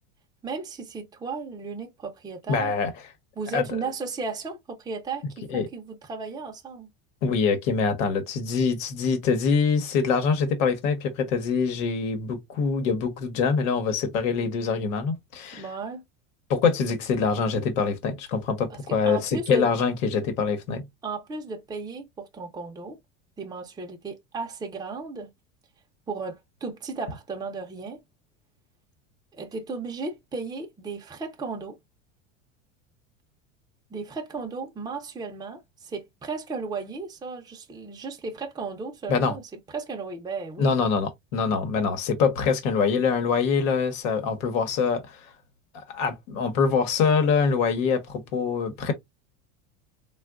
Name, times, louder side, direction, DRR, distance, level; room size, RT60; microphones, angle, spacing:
voice 1, 0.4-2.7 3.4-6.9 15.5-16.0 18.7-19.7 21.0-23.0 23.4-25.3 26.1-28.0 29.3-31.8 33.9-39.4 39.7-40.7, right 4 dB, 10° right, 0.6 m, -35 dB
voice 2, 2.5-2.9 3.5-3.6 5.5-5.7 7.2-15.6 16.5-20.8 39.1-39.4 40.6-45.2 45.9-48.9, left 5 dB, 75° left, 1.1 m, -24 dB
3.5 x 2.4 x 2.3 m
supercardioid pair, 110°, 39 cm